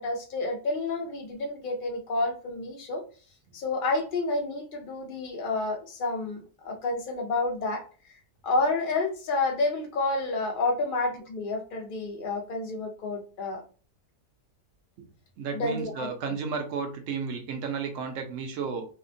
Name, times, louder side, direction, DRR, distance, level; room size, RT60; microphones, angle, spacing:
voice 1, 0.0-3.0 3.5-7.8 8.4-13.6 15.5-16.1, left 3 dB, 70° left, 1 dB, 0.4 m, -29 dB
voice 2, 15.4-18.9, right 5 dB, 65° right, 4 dB, 0.9 m, -33 dB
2.8 x 2.1 x 2.5 m, 0.38 s
omnidirectional pair, 1.6 m